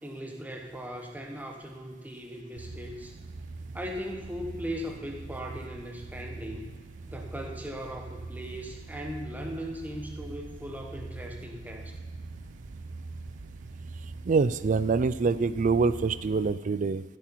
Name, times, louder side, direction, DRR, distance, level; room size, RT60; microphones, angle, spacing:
voice 1, 0.0-3.2 3.7-6.8 7.1-11.9, equal, 10° right, 2 dB, 1.1 m, -38 dB
sound 1, 2.6-16.5, right 3 dB, 90° right, 0.7 m, -43 dB
voice 2, 14.3-17.0, right 4 dB, 40° right, 15 dB, 0.3 m, -25 dB
14.5 x 7.8 x 4.6 m, 1.3 s
head